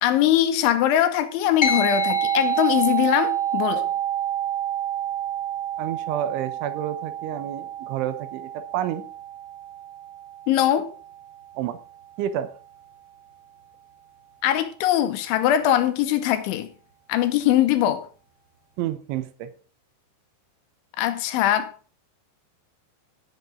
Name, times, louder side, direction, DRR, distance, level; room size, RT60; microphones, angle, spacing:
voice 1, 0.0-3.9 10.5-10.9 14.4-16.7 17.1-18.0 21.0-21.7, left 12 dB, 80° left, 3.3 m, -21 dB
sound 1, 1.6-11.3, right 6 dB, 55° left, 0.8 m, -28 dB
voice 2, 5.8-9.0 11.6-11.8 12.2-12.5 18.8-19.5, right 11 dB, 80° right, 3.3 m, -29 dB
17.0 x 8.0 x 3.8 m
omnidirectional pair, 5.5 m